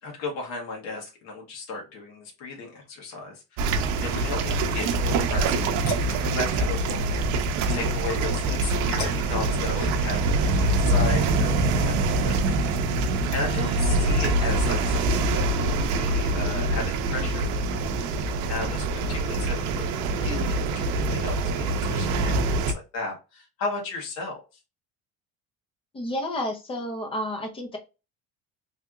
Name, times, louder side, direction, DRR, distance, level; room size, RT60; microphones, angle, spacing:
voice 1, 0.0-5.8 6.2-7.3 7.7-19.9 20.1-24.4, left 3 dB, 60° left, 0 dB, 1.4 m, -35 dB
sound 1, 3.6-22.7, right 2 dB, 70° right, 0.6 m, -24 dB
sound 2, 5.9-10.3, equal, 85° left, 1.5 m, -39 dB
sound 3, 13.2-17.8, right 5 dB, 20° right, 0.4 m, -41 dB
voice 2, 25.9-27.8, left 1 dB, 15° left, 3 dB, 0.7 m, -30 dB
3.2 x 2.8 x 2.4 m, 0.28 s
cardioid pair, 165°, 30 cm